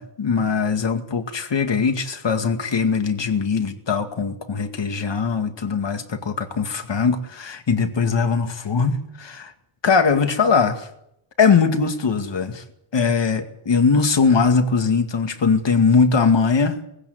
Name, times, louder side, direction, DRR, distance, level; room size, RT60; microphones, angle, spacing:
voice 1, 0.0-9.5 9.8-10.9 11.4-12.6 12.9-16.8, left 5 dB, 60° left, 7 dB, 2.3 m, -20 dB
19.5 x 16.0 x 9.5 m, 0.79 s
wide cardioid pair, 155°, 48 cm